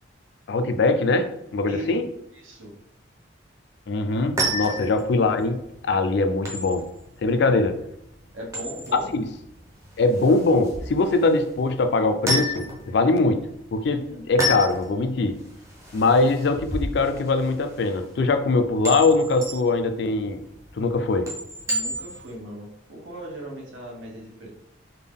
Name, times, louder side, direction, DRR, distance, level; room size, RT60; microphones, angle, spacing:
voice 1, 0.5-2.0 3.9-5.6 5.9-6.9 7.2-7.7 8.9-9.3 10.0-13.5 13.7-15.4 15.9-20.4 20.8-21.3, left 3 dB, 60° left, 8 dB, 0.3 m, -22 dB
voice 2, 1.7-2.0 2.3-2.7 4.8-4.9 7.5-7.6 8.3-9.1 14.1-14.2 21.7-24.5, right 1 dB, 80° right, -2 dB, 1.1 m, -38 dB
sound 1, 4.1-22.3, equal, 15° right, 0.6 m, -32 dB
3.5 x 2.2 x 3.5 m, 0.81 s
head